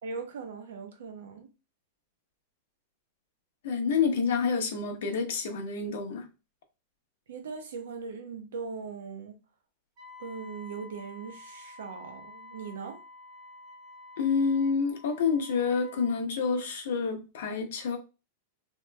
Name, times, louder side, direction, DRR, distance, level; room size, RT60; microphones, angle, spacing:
voice 1, 0.0-1.5 7.3-9.4 10.2-13.0, right 5 dB, 90° right, 0.9 m, -40 dB
voice 2, 3.6-6.3 14.2-18.0, left 5 dB, 70° left, 0.8 m, -28 dB
Wind instrument woodwind instrument, 10.0-16.2, left 2 dB, 35° right, 1.3 m, -49 dB
3.0 x 2.8 x 2.2 m
supercardioid pair, 160°, 0 cm